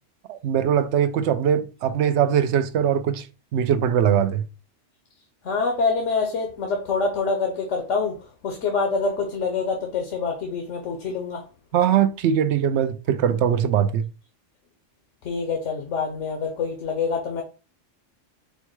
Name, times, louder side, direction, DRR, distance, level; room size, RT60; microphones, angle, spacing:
voice 1, 0.3-3.3 3.5-4.4 11.7-14.1, right 9 dB, 70° right, 0.8 m, -21 dB
voice 2, 5.4-11.4 15.2-17.4, left 4 dB, 85° left, 1.2 m, -26 dB
4.6 x 2.2 x 4.5 m
omnidirectional pair, 1.2 m